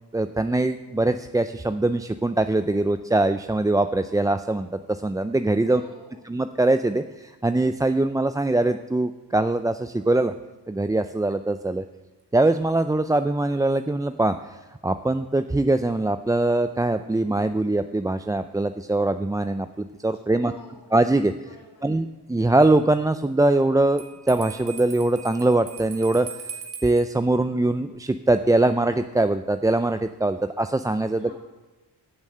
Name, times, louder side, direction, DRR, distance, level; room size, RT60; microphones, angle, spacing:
voice 1, 0.1-5.8 6.3-10.3 10.7-11.8 12.3-20.5 20.9-21.3 21.8-26.5 26.8-31.3, right 2 dB, 10° right, 9 dB, 0.4 m, -22 dB
voice 2, 5.6-6.2 20.3-20.8 21.5-22.0 31.2-31.3, left 1 dB, 70° left, -7 dB, 4.5 m, -48 dB
Bell, 24.0-27.1, right 6 dB, 80° right, 1.6 m, -40 dB
15.5 x 7.1 x 5.6 m, 1.2 s
cardioid pair, 50°, 41 cm